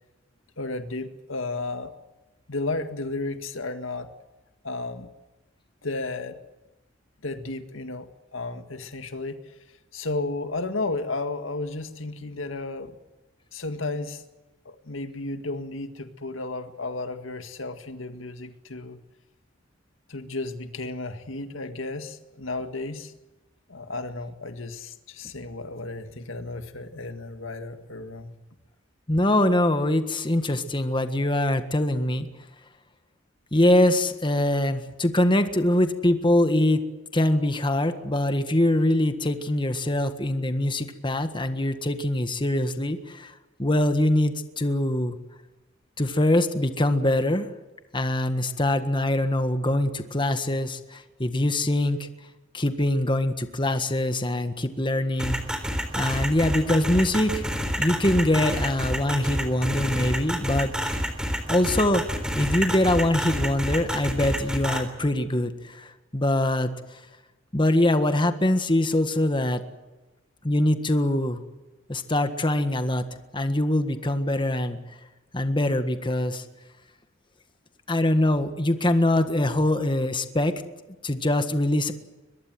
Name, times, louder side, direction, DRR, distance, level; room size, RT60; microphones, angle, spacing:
voice 1, 0.6-1.9 2.5-4.1 4.6-5.1 5.8-6.4 7.2-9.5 9.9-13.0 13.5-14.2 14.7-19.0 20.1-23.1 23.7-28.3, left 2 dB, 80° left, 8 dB, 1.9 m, -33 dB
voice 2, 29.1-32.3 33.5-36.9 37.1-43.3 43.6-45.2 46.0-47.5 47.9-52.1 52.5-55.4 55.9-57.4 57.8-61.0 61.5-67.1 67.5-69.6 70.4-71.4 71.9-73.0 73.3-74.8 75.3-76.4 77.9-80.6 81.0-81.9, left 1 dB, 25° left, 8 dB, 1.6 m, -23 dB
sound 1, 55.2-64.8, equal, 5° right, 3.7 m, -28 dB
23.0 x 21.5 x 7.8 m, 1.1 s
head